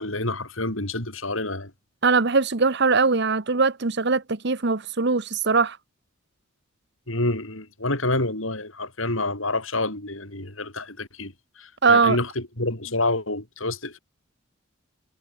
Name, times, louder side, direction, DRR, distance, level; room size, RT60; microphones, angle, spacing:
voice 1, 0.0-1.7 7.1-11.3 11.6-14.0, left 2 dB, 70° left, 6.8 m, -28 dB
voice 2, 2.0-5.8 11.8-12.2, right 4 dB, 55° right, 1.0 m, -21 dB
head